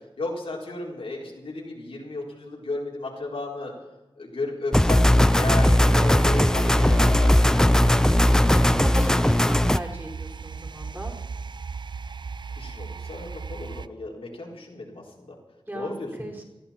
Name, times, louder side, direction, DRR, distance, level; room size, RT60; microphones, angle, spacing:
voice 1, 0.2-3.7 4.2-8.0 12.6-15.3 15.7-16.2, left 2 dB, 85° left, -3 dB, 4.2 m, -34 dB
sound 1, 4.7-9.8, left 1 dB, 5° left, 0.4 m, -18 dB
sound 2, 5.2-13.9, right 5 dB, 55° right, 0.5 m, -36 dB
voice 2, 8.5-11.2 15.7-16.4, right 1 dB, 25° right, -1 dB, 4.7 m, -36 dB
20.0 x 14.0 x 4.4 m, 1.1 s
wide cardioid pair, 70°, 9 cm